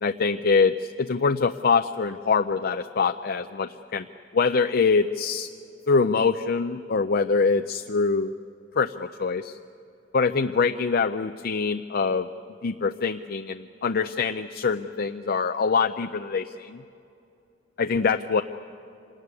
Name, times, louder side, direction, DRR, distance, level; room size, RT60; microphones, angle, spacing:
voice 1, 0.0-4.0 4.3-5.5 5.9-8.3 8.8-9.6 10.1-12.3 12.6-16.8 17.8-18.4, left 5 dB, 55° left, 7 dB, 0.5 m, -24 dB
26.5 x 19.0 x 9.7 m, 2.6 s
head